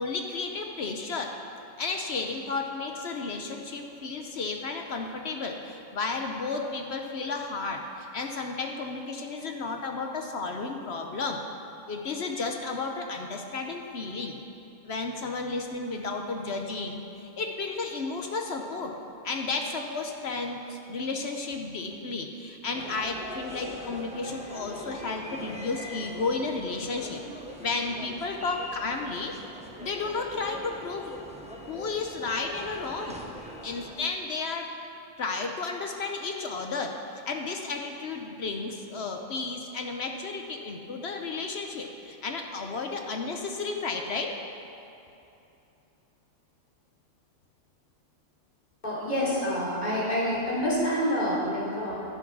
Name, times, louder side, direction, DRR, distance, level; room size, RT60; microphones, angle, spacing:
voice 1, 0.0-1.3 1.8-11.4 11.9-14.4 14.8-18.9 19.2-27.2 27.6-29.4 29.8-31.1 31.7-33.2 33.6-34.7 35.2-44.3, left 3 dB, 60° left, 3 dB, 1.0 m, -33 dB
sound 1, 22.7-34.0, equal, 5° right, 0.8 m, -42 dB
voice 2, 48.8-52.0, equal, 35° left, -9 dB, 3.5 m, -27 dB
11.0 x 8.5 x 6.0 m, 2.8 s
omnidirectional pair, 1.3 m